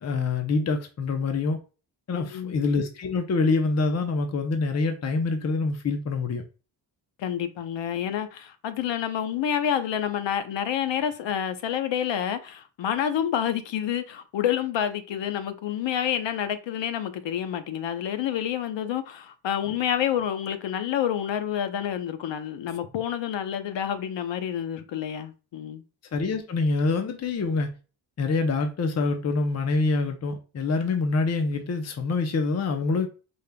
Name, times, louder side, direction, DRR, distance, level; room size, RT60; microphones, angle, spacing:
voice 1, 0.0-1.6 2.1-6.4 26.1-27.7 28.2-33.1, left 3 dB, 35° left, 0.6 m, -25 dB
voice 2, 2.1-2.5 7.2-25.8, left 9 dB, 80° left, 0.8 m, -28 dB
5.4 x 3.4 x 2.2 m
cardioid pair, 110°, 44 cm